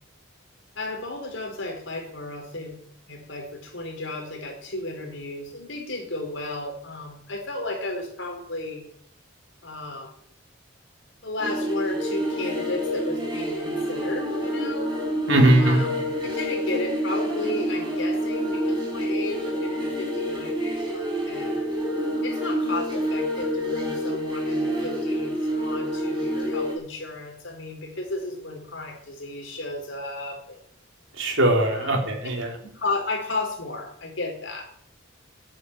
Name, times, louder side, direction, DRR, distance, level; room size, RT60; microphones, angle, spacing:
voice 1, 0.8-2.8 3.1-8.9 9.6-10.1 11.2-14.9 15.5-21.6 22.2-30.6 31.7-32.0 32.6-34.6, left 2 dB, 65° left, 2 dB, 4.3 m, -34 dB
sound 1, 11.4-26.8, equal, 20° right, 4.7 m, -27 dB
voice 2, 15.3-15.8 31.2-32.5, right 1 dB, 65° right, 1 dB, 3.7 m, -20 dB
11.5 x 9.5 x 8.0 m, 0.68 s
head